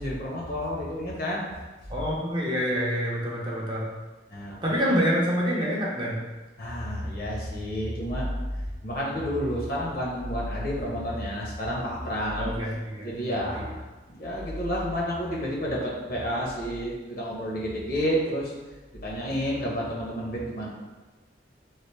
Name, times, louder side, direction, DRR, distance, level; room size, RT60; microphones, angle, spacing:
voice 1, 0.0-1.4 4.3-4.6 6.6-8.3 8.8-12.5 13.0-13.8 14.1-18.5 19.0-20.7, equal, 50° left, -4 dB, 0.8 m, -30 dB
voice 2, 1.9-3.9 4.6-6.2 12.4-13.6, equal, 25° right, -4 dB, 0.5 m, -27 dB
3.2 x 2.5 x 3.1 m, 1.2 s
head